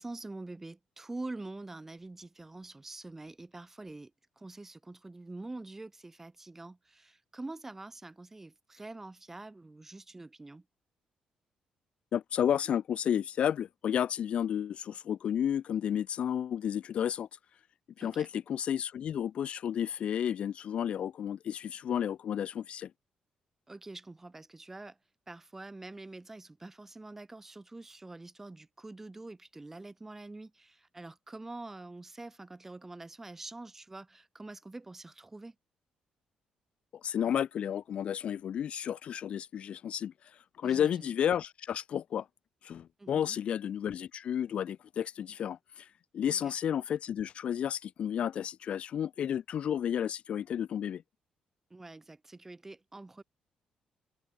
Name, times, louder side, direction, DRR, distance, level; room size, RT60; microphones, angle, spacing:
voice 1, 0.0-4.1 4.4-10.6 18.0-18.3 23.7-25.0 25.3-35.6 40.6-41.1 43.0-43.4 46.3-46.5 51.7-53.2, right 2 dB, 15° right, 1.8 m, -46 dB
voice 2, 12.1-17.3 18.0-22.9 37.0-40.1 40.6-42.3 42.6-45.9 46.1-51.0, left 9 dB, 55° left, 0.3 m, -32 dB
cardioid pair, 135°, 2 cm